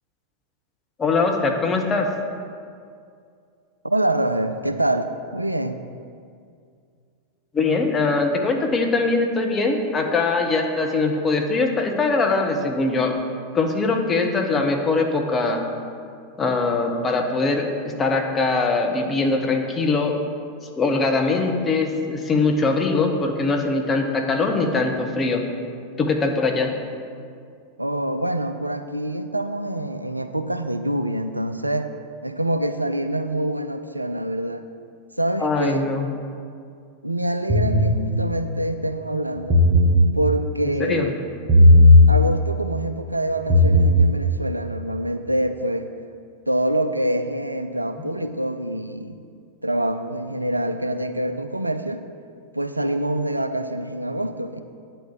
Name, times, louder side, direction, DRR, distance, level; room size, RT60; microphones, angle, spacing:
voice 1, 1.0-2.1 7.5-13.2 13.5-15.6 16.4-20.2 20.8-25.4 26.0-26.7 35.4-36.1 40.8-41.1, left 3 dB, 20° left, 3 dB, 1.1 m, -22 dB
voice 2, 3.8-5.8 27.8-31.9 32.2-34.6 35.2-35.8 37.0-39.6 40.1-41.2 42.1-45.9 46.5-49.2 49.6-52.0 52.5-54.6, right 1 dB, 85° right, 9 dB, 0.4 m, -25 dB
sound 1, 37.5-38.0 39.4-40.0 41.5-42.0 43.4-44.0, left 1 dB, 30° right, 1.3 m, -13 dB
9.1 x 4.4 x 7.4 m, 2.3 s
figure-of-eight pair, 90°, 0 cm